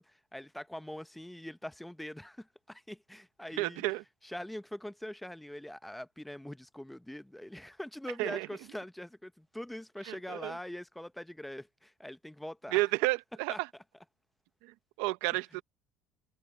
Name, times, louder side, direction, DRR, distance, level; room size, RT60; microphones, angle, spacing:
voice 1, 0.0-3.8 4.2-12.8 13.5-13.6, left 1 dB, 5° left, 0.6 m, -43 dB
voice 2, 3.6-4.0 8.2-8.5 10.1-10.6 12.7-13.7 14.6-15.6, right 21 dB, 85° right, 0.7 m, -31 dB
cardioid pair, 135°, 2 cm